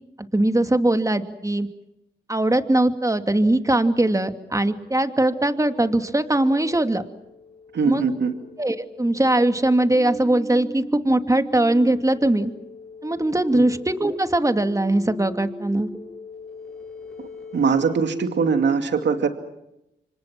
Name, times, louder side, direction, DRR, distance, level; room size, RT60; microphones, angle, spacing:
voice 1, 0.3-1.7 2.3-7.0 7.9-8.0 8.6-12.5 13.0-15.9, right 1 dB, 15° right, 8 dB, 2.5 m, -21 dB
sound 1, 4.7-17.9, left 1 dB, 5° left, 7.9 m, -40 dB
voice 2, 7.7-8.3 13.5-13.7 17.2-19.3, right 5 dB, 75° right, 6 dB, 2.5 m, -22 dB
28.5 x 25.0 x 6.0 m, 0.86 s
cardioid pair, 50°, 19 cm